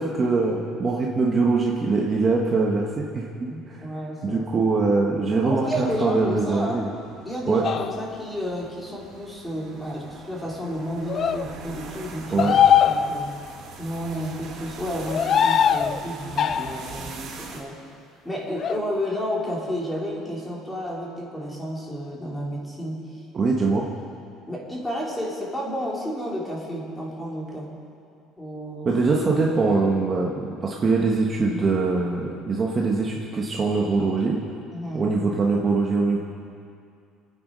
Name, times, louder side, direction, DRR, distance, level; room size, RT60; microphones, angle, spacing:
voice 1, 0.0-3.3 3.7-3.8 4.2-6.9 7.5-7.6 12.3-12.5 23.3-23.8 28.8-34.4 34.9-36.2, right 3 dB, 25° right, -2 dB, 1.4 m, -22 dB
voice 2, 3.5-4.5 5.4-6.9 7.3-12.5 12.8-13.4 13.8-17.8 18.2-23.0 24.5-27.7 28.4-28.9 34.7-35.1, equal, 10° left, -3 dB, 3.4 m, -31 dB
sound 1, 6.2-17.6, right 4 dB, 50° right, 4.7 m, -42 dB
sound 2, 7.6-8.2 11.1-11.4 12.4-13.5 15.0-16.0 16.4-16.9 18.6-18.8, left 8 dB, 35° left, 0.5 m, -21 dB
27.5 x 9.3 x 5.5 m, 2.4 s
cardioid pair, 150°, 0 cm